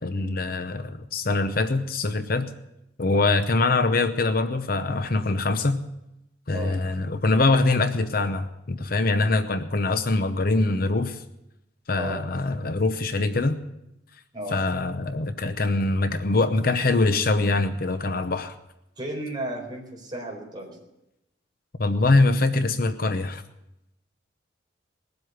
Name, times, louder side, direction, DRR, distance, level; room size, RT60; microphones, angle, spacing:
voice 1, 0.0-2.5 3.0-5.8 6.5-11.2 11.9-13.6 14.5-18.5 21.8-23.4, left 3 dB, 50° left, 9 dB, 0.8 m, -23 dB
voice 2, 19.0-20.8, right 1 dB, 25° right, 0 dB, 4.3 m, -34 dB
20.0 x 7.9 x 8.0 m, 0.89 s
head